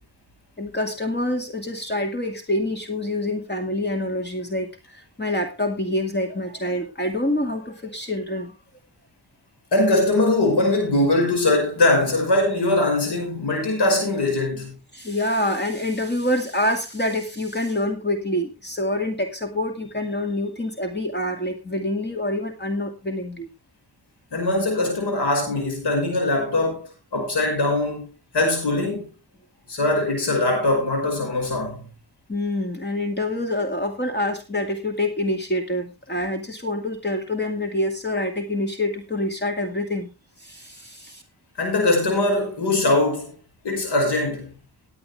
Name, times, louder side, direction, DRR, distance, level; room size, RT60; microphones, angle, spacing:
voice 1, 0.6-8.5 14.9-23.5 32.3-40.1 40.4-41.2, left 1 dB, 25° left, 2.4 m, -26 dB
voice 2, 9.7-14.8 24.3-28.1 28.3-29.1 29.7-31.9 41.6-43.4 43.6-44.5, left 2 dB, 85° left, 5.6 m, -21 dB
18.5 x 8.7 x 3.4 m
cardioid pair, 80°, 39 cm